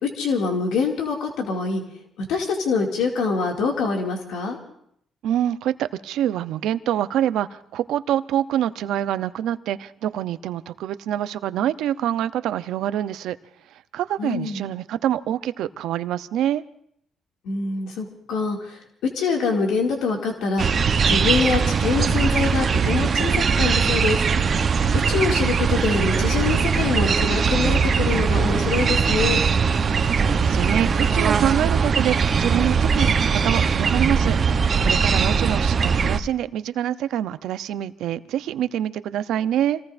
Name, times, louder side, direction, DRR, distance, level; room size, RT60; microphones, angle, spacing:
voice 1, 0.0-1.8 2.2-4.6 14.2-14.7 17.4-18.8 19.1-24.2 25.1-29.4, left 4 dB, 85° left, 2.3 m, -25 dB
voice 2, 5.2-13.4 13.7-16.6 30.1-39.8, right 11 dB, 85° right, 0.6 m, -26 dB
sound 1, 20.6-36.2, right 6 dB, 45° right, 0.9 m, -20 dB
28.5 x 19.0 x 2.6 m
cardioid pair, 90°, 0 cm